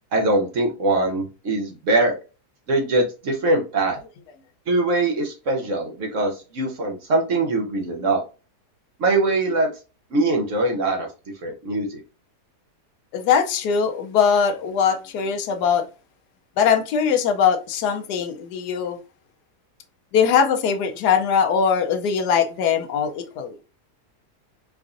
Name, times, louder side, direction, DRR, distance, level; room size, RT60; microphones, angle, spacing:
voice 1, 0.1-2.2 2.7-4.0 4.7-8.2 9.0-9.7 10.1-11.1 11.4-12.0, right 2 dB, 55° right, 1.0 m, -22 dB
voice 2, 13.1-15.8 16.6-19.0 20.1-23.6, left 7 dB, 80° left, 1.1 m, -21 dB
4.8 x 2.5 x 2.4 m
omnidirectional pair, 1.7 m